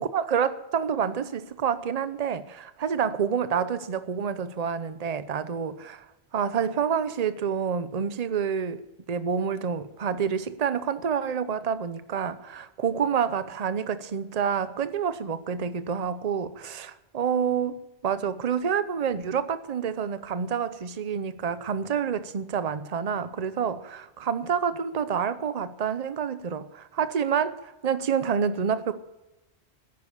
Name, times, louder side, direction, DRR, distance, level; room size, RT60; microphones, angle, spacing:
voice 1, 0.0-6.0 6.3-8.8 9.1-17.8 18.0-28.9, right 7 dB, 40° right, 13 dB, 0.8 m, -28 dB
10.5 x 9.7 x 8.3 m, 0.98 s
omnidirectional pair, 1.1 m